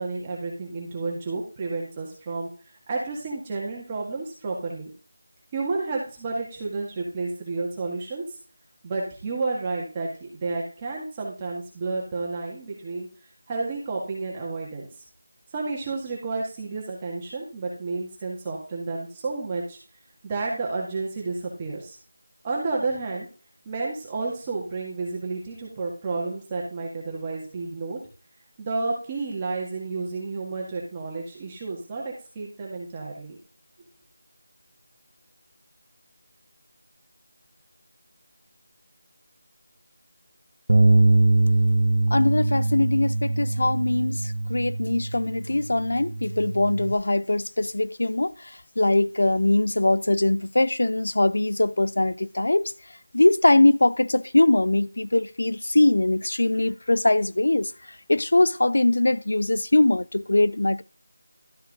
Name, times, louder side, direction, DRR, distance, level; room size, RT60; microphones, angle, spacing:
voice 1, 0.0-2.5 2.9-4.9 5.5-8.2 8.8-13.1 13.5-14.9 15.5-19.8 20.2-22.0 22.4-23.3 23.7-28.0 28.6-33.4, right 3 dB, 15° right, 1.8 m, -31 dB
Bass guitar, 40.7-46.9, right 2 dB, 55° right, 0.9 m, -22 dB
voice 2, 42.1-52.7 53.1-57.7 58.1-60.8, left 2 dB, 70° left, 0.5 m, -22 dB
12.5 x 4.7 x 4.8 m
figure-of-eight pair, 175°, 0 cm